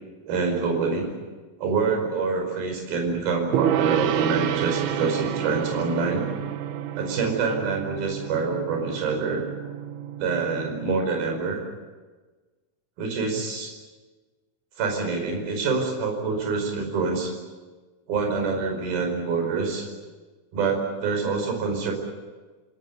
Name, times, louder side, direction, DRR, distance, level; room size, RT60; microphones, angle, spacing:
voice 1, 0.2-1.1 1.6-6.3 6.9-9.5 10.2-11.6 13.0-13.7 14.8-17.3 18.1-19.9 20.5-21.9, right 4 dB, 50° right, 2 dB, 6.7 m, -26 dB
Gong, 3.5-11.0, right 10 dB, 70° right, 2.7 m, -29 dB
28.5 x 17.0 x 9.6 m, 1.3 s
omnidirectional pair, 5.5 m